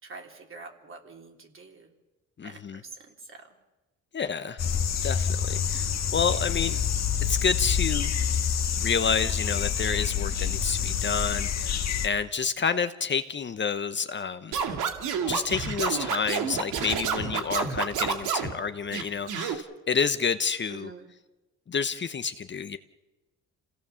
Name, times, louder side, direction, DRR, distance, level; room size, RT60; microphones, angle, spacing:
voice 1, 0.0-1.9 2.4-3.5 20.7-21.1, right 4 dB, 45° right, 3 dB, 3.6 m, -46 dB
voice 2, 2.4-2.8 4.1-4.6 5.0-6.8 7.2-8.1 8.8-14.5 15.3-20.9 21.7-22.8, left 6 dB, 40° left, 10 dB, 1.0 m, -29 dB
sound 1, 4.6-12.1, left 8 dB, 60° left, 1.9 m, -27 dB
Scratching (performance technique), 14.5-18.5 18.9-19.5, right 7 dB, 90° right, 2.4 m, -29 dB
27.0 x 17.0 x 7.1 m, 1.1 s
cardioid pair, 90°, 30 cm